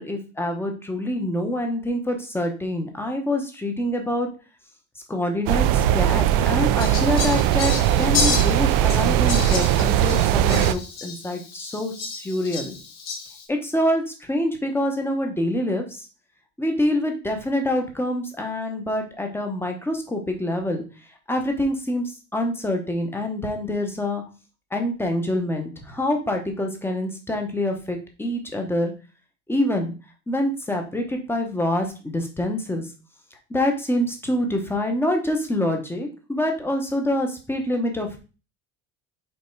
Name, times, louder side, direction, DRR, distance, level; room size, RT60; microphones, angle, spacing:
voice 1, 0.0-4.3 5.1-12.8 13.5-16.1 16.6-20.8 21.3-24.2 24.7-28.9 29.5-29.9 30.3-32.9 33.5-38.2, left 1 dB, 5° left, 3 dB, 0.9 m, -26 dB
sound 1, 5.5-10.7, right 12 dB, 65° right, 0.5 m, -20 dB
Fowl, 6.8-13.5, left 5 dB, 45° left, 1.7 m, -31 dB
5.4 x 4.5 x 4.5 m, 0.33 s
cardioid pair, 175°, 37 cm